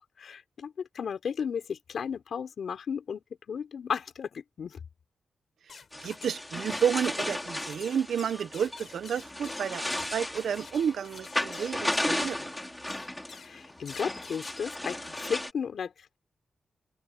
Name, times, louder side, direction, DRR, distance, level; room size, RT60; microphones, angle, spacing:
voice 1, 0.0-4.8 13.3-16.2, left 7 dB, 65° left, 5.1 m, -35 dB
sound 1, 5.7-6.5 6.7-12.4 12.9-13.5 13.9-14.6, left 5 dB, 50° left, 4.9 m, -49 dB
sound 2, 5.9-15.5, left 1 dB, 10° left, 4.4 m, -35 dB
voice 2, 6.0-12.5, right 8 dB, 80° right, 1.2 m, -31 dB
open air
wide cardioid pair, 125°, 0 cm